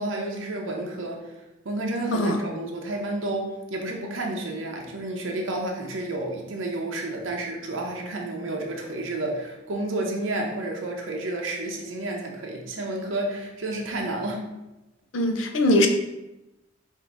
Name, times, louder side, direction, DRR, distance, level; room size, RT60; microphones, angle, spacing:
voice 1, 0.0-14.4, right 2 dB, 75° right, 0 dB, 0.7 m, -31 dB
voice 2, 15.1-15.9, left 1 dB, 70° left, 5 dB, 0.6 m, -21 dB
4.6 x 2.7 x 3.8 m, 0.98 s
head